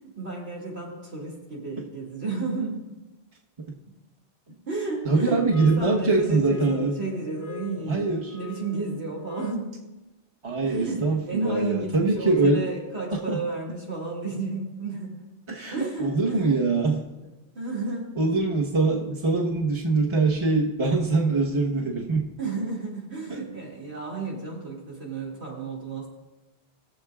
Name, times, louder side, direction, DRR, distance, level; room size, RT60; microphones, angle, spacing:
voice 1, 0.0-2.8 4.7-9.8 10.6-15.2 15.7-16.6 17.5-18.1 22.4-26.1, right 3 dB, 85° right, -4 dB, 2.6 m, -32 dB
voice 2, 5.0-7.0 7.9-8.3 10.4-12.6 13.3-13.4 15.5-17.0 18.2-22.3, right 3 dB, 30° right, -2 dB, 1.2 m, -23 dB
sound 1, 5.5-9.9, left 5 dB, 40° left, 0.6 m, -42 dB
21.0 x 7.2 x 2.4 m, 1.0 s
omnidirectional pair, 1.1 m